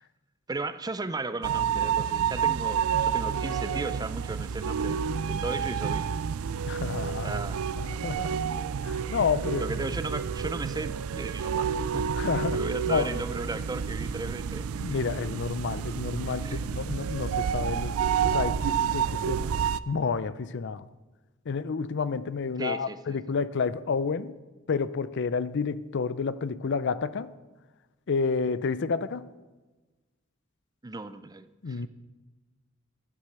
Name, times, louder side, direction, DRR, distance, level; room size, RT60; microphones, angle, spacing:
voice 1, 0.5-6.1 7.2-7.6 9.6-12.1 12.5-14.7 16.4-16.7 22.6-23.2 30.8-31.9, right 3 dB, 20° right, 13 dB, 0.5 m, -36 dB
sound 1, 1.4-19.8, right 7 dB, 90° right, 0.4 m, -29 dB
voice 2, 6.7-7.4 7.9-8.4 8.8-9.6 12.1-12.6 12.8-13.1 14.8-19.5 19.9-20.9 21.5-24.3 24.7-27.3 28.1-29.2 31.6-31.9, left 5 dB, 60° left, 16 dB, 0.5 m, -30 dB
11.5 x 9.7 x 6.7 m, 1.2 s
head